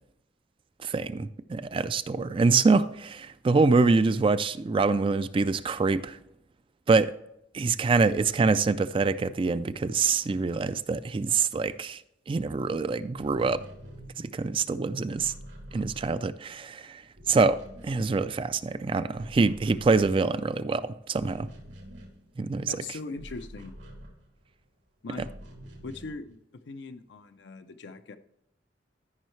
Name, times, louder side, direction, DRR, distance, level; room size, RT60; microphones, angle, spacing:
voice 1, 0.8-6.2 6.9-7.1 7.5-12.0 12.3-13.6 14.2-15.3 15.7-17.0 17.3-17.6 17.8-21.5 22.4-22.8, right 4 dB, 30° right, 0.3 m, -25 dB
sound 1, 13.1-16.7 17.0-18.7 19.0-24.6 25.1-26.4, equal, 85° right, 2.8 m, -47 dB
voice 2, 22.7-23.7 25.0-25.3 25.8-26.4 26.7-28.2, left 3 dB, 70° left, 0.5 m, -40 dB
13.5 x 5.5 x 3.2 m
head